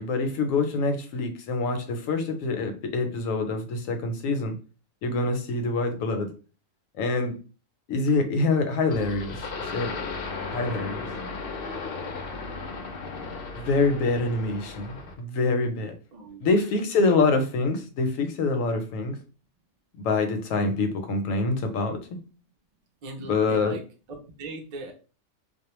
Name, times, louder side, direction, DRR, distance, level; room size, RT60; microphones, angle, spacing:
voice 1, 0.0-4.5 5.0-6.3 7.0-7.3 7.9-9.4 9.7-10.0 10.5-11.1 13.5-15.9 16.4-19.2 20.0-22.0 23.3-23.7, left 3 dB, 80° left, 1.0 m, -25 dB
sound 1, 8.9-15.2, left 4 dB, 60° left, 0.6 m, -35 dB
voice 2, 16.1-16.5 23.0-23.8 24.1-24.9, right 2 dB, 60° right, 0.4 m, -38 dB
2.3 x 2.1 x 2.9 m
omnidirectional pair, 1.3 m